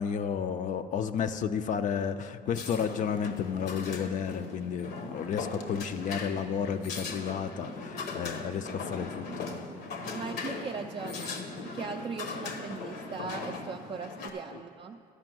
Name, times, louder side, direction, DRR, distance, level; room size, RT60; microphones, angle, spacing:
voice 1, 0.0-9.7 14.5-14.6, left 7 dB, 50° left, 10 dB, 0.4 m, -32 dB
sound 1, 2.5-14.3, left 4 dB, 75° left, 1.1 m, -39 dB
voice 2, 10.1-15.0, right 5 dB, 30° right, 4 dB, 0.4 m, -39 dB
11.5 x 5.2 x 7.6 m, 2.4 s
cardioid pair, 110°, 17 cm